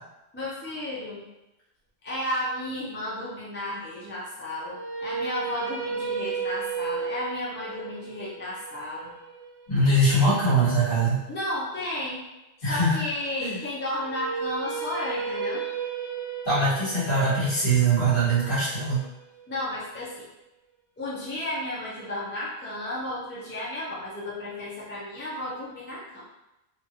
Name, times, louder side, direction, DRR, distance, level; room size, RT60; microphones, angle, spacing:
voice 1, 0.3-1.3 2.0-9.1 11.3-12.2 12.7-15.6 19.5-20.3 21.0-26.2, left 1 dB, 15° left, -7 dB, 0.4 m, -33 dB
sound 1, 4.5-10.7 13.9-20.0, right 5 dB, 80° right, 0.9 m, -34 dB
voice 2, 9.7-11.2 12.6-13.0 13.4-13.6 16.4-19.0, right 2 dB, 55° left, -10 dB, 1.7 m, -22 dB
3.0 x 2.4 x 2.8 m, 0.96 s
omnidirectional pair, 1.1 m